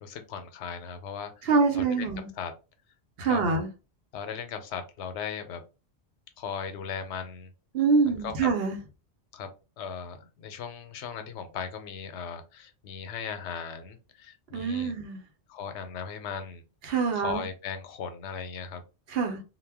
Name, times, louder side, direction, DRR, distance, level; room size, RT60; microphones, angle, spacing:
voice 1, 0.0-1.5 1.7-2.1 2.4-2.5 3.2-3.5 4.1-5.6 6.4-7.5 8.2-8.3 9.3-9.5 9.8-14.9 15.5-16.6 17.1-18.8, left 6 dB, 85° left, 0.9 m, -37 dB
voice 2, 1.4-2.3 3.2-3.7 7.7-8.8 14.5-15.2 16.8-17.5 19.1-19.4, right 4 dB, 65° right, 0.8 m, -25 dB
2.2 x 2.1 x 3.3 m
omnidirectional pair, 1.1 m